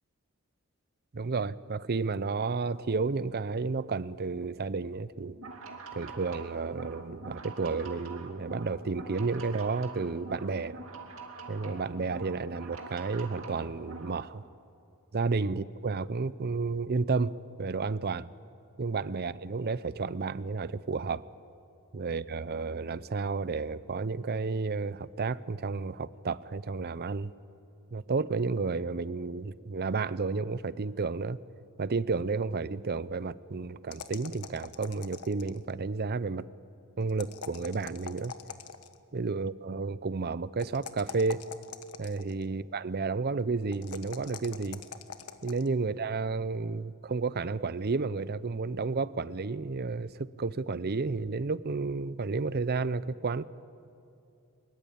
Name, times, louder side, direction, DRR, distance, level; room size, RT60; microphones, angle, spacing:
voice 1, 1.1-5.4 5.9-10.8 11.5-14.4 15.1-18.3 18.8-21.2 21.9-27.3 27.9-31.4 31.8-36.5 37.0-38.3 39.1-41.4 42.0-44.8 45.4-53.4, right 4 dB, 45° right, 17 dB, 0.6 m, -31 dB
sound 1, 5.3-14.2, right 3 dB, 65° right, 2.6 m, -45 dB
sound 2, 33.9-35.7 37.1-39.0 40.6-42.4 43.7-45.7, left 6 dB, 85° left, 1.2 m, -44 dB
23.5 x 22.0 x 8.6 m, 2.6 s
head